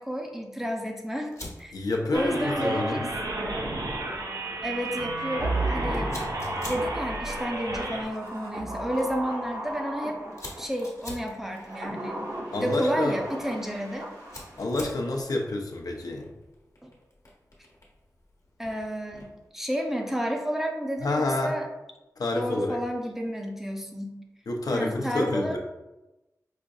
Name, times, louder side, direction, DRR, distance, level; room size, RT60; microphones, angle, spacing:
voice 1, 0.0-1.3 1.6-1.7 2.1-3.0 4.6-6.1 6.6-10.2 10.6-12.2 12.6-14.1 16.8-16.9 18.6-19.3 19.5-21.7 22.3-24.1 24.7-25.6, equal, 5° right, 1 dB, 0.5 m, -31 dB
Fire, 1.3-19.5, left 2 dB, 60° left, 1.0 m, -49 dB
voice 2, 1.7-3.1 12.5-13.2 14.6-16.3 21.0-21.6 22.2-22.8 24.5-25.6, left 2 dB, 80° left, 1 dB, 0.5 m, -28 dB
sound 1, 2.1-8.0, right 2 dB, 85° right, 0.5 m, -33 dB
sound 2, 5.4-10.9 11.5-14.7 15.0-15.1, right 1 dB, 65° right, 1.0 m, -34 dB
4.9 x 2.6 x 2.3 m, 1.0 s
wide cardioid pair, 80°, 6 cm